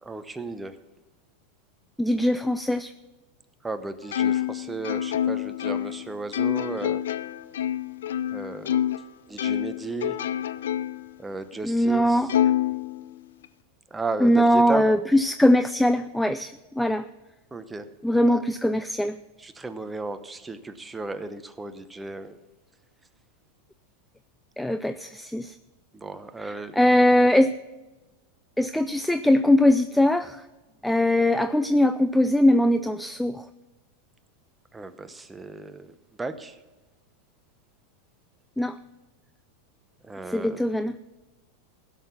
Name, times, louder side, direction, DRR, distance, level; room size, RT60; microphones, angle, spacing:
voice 1, 0.0-0.8 3.6-7.0 8.3-8.8 9.3-10.2 11.2-12.3 13.9-14.9 17.5-17.9 18.2-18.4 19.4-22.4 25.9-26.8 34.7-36.6 40.0-40.6, right 3 dB, 10° right, 10 dB, 0.9 m, -34 dB
voice 2, 2.0-2.9 11.6-12.3 14.2-17.1 18.0-19.2 24.6-25.6 26.4-27.5 28.6-30.4 30.8-33.5 38.6-38.8 40.3-41.0, left 1 dB, 5° left, 11 dB, 0.4 m, -21 dB
Plucked string instrument, 4.1-9.1 9.4-11.1 11.5-11.6 12.3-13.5, left 10 dB, 80° left, 0.5 m, -27 dB
16.0 x 6.7 x 5.8 m, 1.1 s
hypercardioid pair, 110°, 0 cm